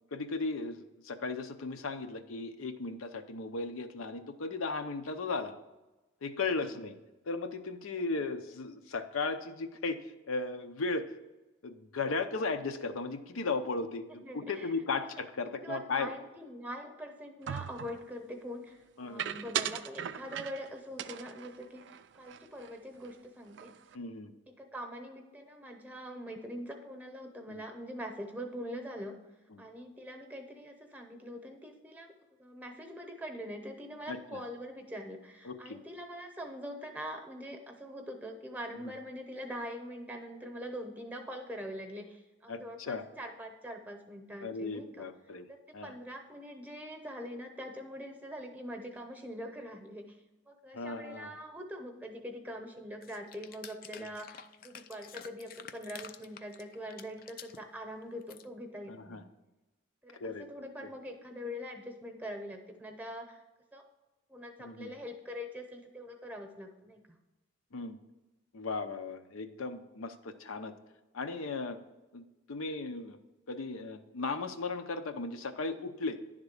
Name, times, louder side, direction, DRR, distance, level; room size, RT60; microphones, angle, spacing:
voice 1, 0.1-5.6 6.2-7.0 7.3-10.0 10.3-11.1 11.6-16.1 19.0-19.2 23.9-24.3 27.5-27.6 29.5-29.6 34.1-34.4 35.4-35.8 42.5-43.0 44.4-45.5 45.7-45.9 50.7-51.3 54.0-54.1 58.9-59.2 60.2-60.5 60.8-60.9 64.6-64.9 67.7-68.0 68.5-70.7 71.1-71.8 72.1-73.2 73.5-76.2, left 3 dB, 90° left, 8 dB, 0.6 m, -36 dB
voice 2, 14.2-14.7 15.6-21.9 22.1-23.7 24.5-29.2 29.6-32.1 32.4-45.1 45.5-50.2 50.5-59.3 60.0-63.4 63.7-63.8 64.3-67.2, equal, 10° right, 4 dB, 0.8 m, -43 dB
sound 1, 17.5-18.0 19.2-20.7 21.0-22.7 23.0-23.2 23.5-24.0, right 9 dB, 55° right, 0.3 m, -38 dB
sound 2, 53.0-57.6 58.0-58.4, left 8 dB, 45° left, 0.3 m, -50 dB
10.5 x 3.6 x 6.5 m, 1.1 s
head